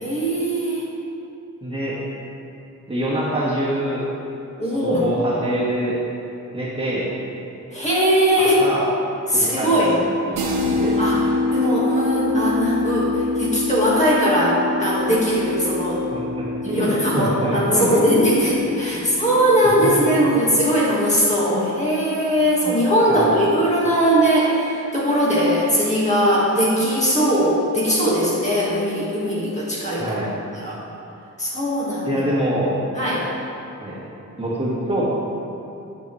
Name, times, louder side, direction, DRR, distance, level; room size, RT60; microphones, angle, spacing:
voice 1, 0.0-0.8 4.6-5.0 7.7-8.7 9.3-10.0 11.0-11.2 11.5-16.0 16.6-30.2 30.6-30.8 31.4-32.2 33.0-33.3, equal, 20° left, -7 dB, 1.6 m, -20 dB
voice 2, 1.6-2.0 2.9-4.0 4.6-5.9 6.5-7.1 8.4-8.9 9.3-11.0 16.1-17.9 18.9-19.2 19.8-20.3 21.5-21.6 22.6-23.3 30.0-30.4 32.0-32.8 33.8-34.0 34.4-35.0, right 1 dB, 20° right, -8 dB, 1.5 m, -25 dB
sound 1, 10.4-20.0, left 2 dB, 85° right, 0.9 m, -25 dB
10.5 x 6.9 x 3.2 m, 2.7 s
wide cardioid pair, 145°, 31 cm